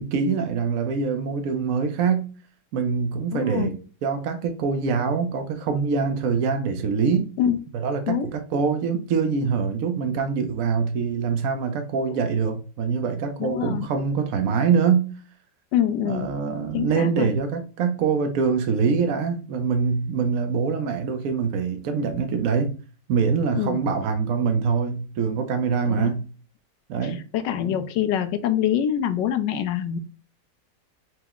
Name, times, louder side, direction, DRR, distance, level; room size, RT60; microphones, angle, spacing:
voice 1, 0.0-2.3 2.7-7.3 7.7-15.1 16.0-22.7 23.1-26.2 26.9-27.2, right 5 dB, 70° right, 0.8 m, -24 dB
voice 2, 3.3-3.7 7.4-7.6 8.1-8.3 13.4-13.9 15.7-16.3 16.7-17.3 23.6-23.8 25.9-26.1 27.0-30.0, left 10 dB, 75° left, 1.2 m, -25 dB
5.7 x 2.1 x 3.5 m
omnidirectional pair, 2.1 m